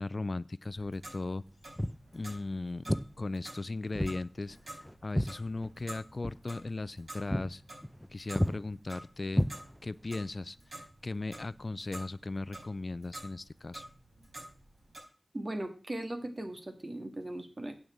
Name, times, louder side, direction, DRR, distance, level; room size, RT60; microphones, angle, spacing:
voice 1, 0.0-1.4 2.1-7.6 8.1-9.4 9.8-13.9, left 2 dB, 50° left, 18 dB, 0.4 m, -37 dB
Clock, 0.6-15.0, right 1 dB, 65° right, 5.3 m, -50 dB
Walk footsteps, 1.8-2.1 2.9-3.1 3.9-4.2 4.5-5.9 6.2-6.4 6.8-7.0 7.3-7.5 7.8-8.1 8.4-8.6 9.3-10.0, equal, 5° left, 0.6 m, -31 dB
voice 2, 15.3-17.7, right 1 dB, 45° right, 6 dB, 1.9 m, -38 dB
8.7 x 6.4 x 7.2 m, 0.39 s
wide cardioid pair, 65°, 0 cm